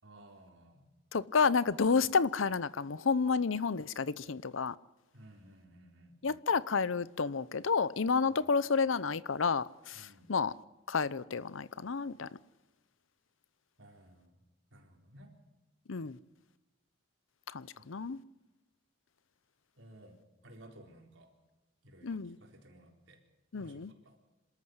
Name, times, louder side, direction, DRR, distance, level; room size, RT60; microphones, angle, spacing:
voice 1, 0.0-0.9 5.1-6.2 8.4-8.5 9.9-10.4 13.8-14.3 14.7-15.3 17.7-17.9 19.8-20.2 20.4-21.3 21.8-23.2 23.6-24.2, right 1 dB, 75° right, 4.2 m, -56 dB
voice 2, 1.1-4.7 6.2-10.5 10.9-12.3 15.9-16.2 17.5-18.2 22.0-22.4 23.5-23.9, left 5 dB, 85° left, 0.7 m, -30 dB
26.5 x 13.0 x 8.0 m
head